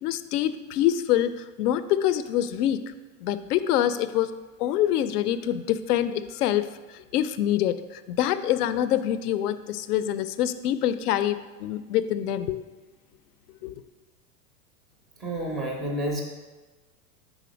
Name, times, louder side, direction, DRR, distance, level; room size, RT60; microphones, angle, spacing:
voice 1, 0.0-2.9 3.2-4.3 4.6-12.6 13.6-13.7, left 11 dB, 80° left, 13 dB, 0.5 m, -25 dB
voice 2, 15.2-16.2, right 1 dB, ahead, 0 dB, 0.4 m, -29 dB
5.0 x 4.1 x 5.0 m, 1.3 s
supercardioid pair, 135°, 45 cm